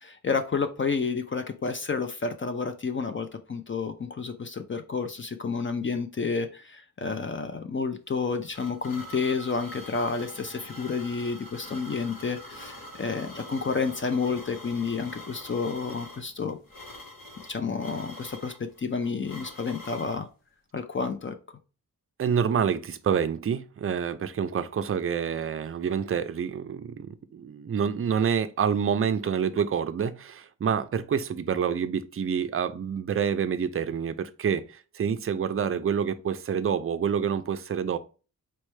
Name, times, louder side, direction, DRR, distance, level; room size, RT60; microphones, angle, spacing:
voice 1, 0.0-16.6 17.5-20.3 20.7-21.4, left 5 dB, 35° left, 0.4 m, -30 dB
sound 1, 8.1-20.2, left 1 dB, 85° left, 1.1 m, -45 dB
voice 2, 22.2-38.0, right 7 dB, 40° right, 0.4 m, -27 dB
4.3 x 3.2 x 3.2 m
wide cardioid pair, 135°, 34 cm